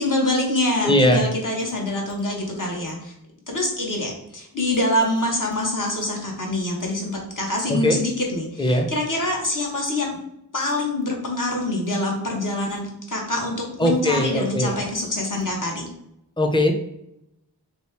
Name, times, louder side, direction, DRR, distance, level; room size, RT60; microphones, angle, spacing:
voice 1, 0.0-3.1 3.5-10.2 10.5-15.9, left 1 dB, 55° left, -1 dB, 1.1 m, -25 dB
voice 2, 0.8-1.2 7.7-8.0 8.6-8.9 13.8-14.7 16.4-16.7, left 1 dB, 15° left, 4 dB, 0.5 m, -19 dB
3.1 x 2.8 x 3.3 m, 0.80 s
wide cardioid pair, 40°, 39 cm